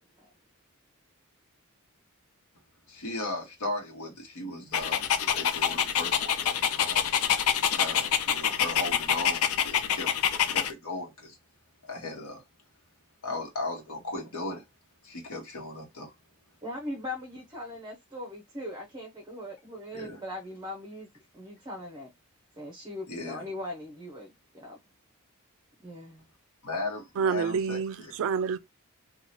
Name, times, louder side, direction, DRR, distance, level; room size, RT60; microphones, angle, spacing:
voice 1, 2.9-7.0 7.7-11.4 11.8-12.4 13.2-14.6 15.0-16.1 19.9-20.2 23.1-23.5 26.6-27.8, left 2 dB, 90° left, 0.9 m, -37 dB
Dog, 4.7-10.7, left 8 dB, 70° left, 0.4 m, -26 dB
voice 2, 16.6-21.1 21.3-22.1 22.6-24.8 25.8-26.2, left 1 dB, 20° right, 0.6 m, -40 dB
voice 3, 27.2-28.6, right 6 dB, 65° right, 0.3 m, -28 dB
2.9 x 2.2 x 2.9 m
head